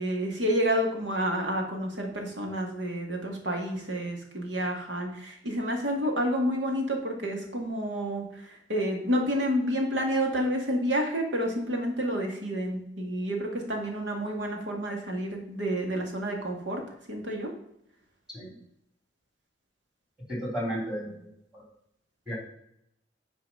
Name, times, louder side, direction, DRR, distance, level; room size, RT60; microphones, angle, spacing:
voice 1, 0.0-16.8 17.1-17.5, equal, 80° right, 1 dB, 2.1 m, -29 dB
voice 2, 20.3-21.1 21.5-21.6 22.3-22.4, equal, 5° right, -2 dB, 3.3 m, -32 dB
9.4 x 4.8 x 5.5 m, 0.75 s
head